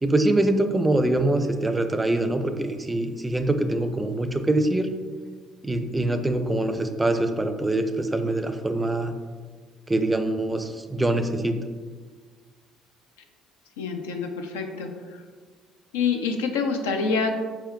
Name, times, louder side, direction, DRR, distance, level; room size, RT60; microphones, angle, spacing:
voice 1, 0.0-4.9 5.6-9.1 9.9-11.5, right 2 dB, 15° right, 8 dB, 0.4 m, -24 dB
voice 2, 13.8-15.2 15.9-17.3, left 5 dB, 90° left, 4 dB, 0.4 m, -27 dB
4.4 x 3.5 x 2.2 m, 1.5 s
hypercardioid pair, 65°, 0 cm